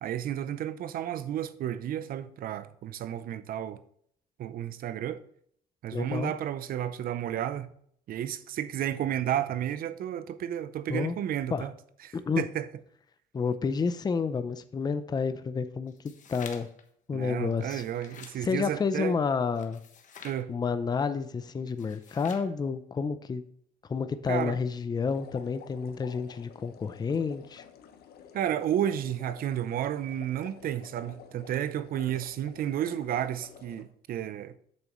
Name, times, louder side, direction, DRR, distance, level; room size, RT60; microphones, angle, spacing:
voice 1, 0.0-3.8 4.4-5.2 5.8-7.7 8.1-11.7 12.0-12.7 17.1-19.1 20.2-20.5 24.3-24.6 28.3-34.5, right 10 dB, 60° right, 0.7 m, -32 dB
voice 2, 5.9-6.3 10.9-11.2 11.5-11.6 12.1-12.5 13.3-15.9 16.3-16.7 17.1-17.8 18.4-19.8 20.5-23.4 23.9-27.6, left 5 dB, 25° left, 0.6 m, -30 dB
sound 1, 15.9-16.8 17.5-18.4 19.6-20.4 21.7-22.5, left 6 dB, 50° left, 1.3 m, -48 dB
sound 2, 25.1-33.8, left 8 dB, 65° left, 1.1 m, -51 dB
8.6 x 6.9 x 3.1 m
cardioid pair, 110°, 17 cm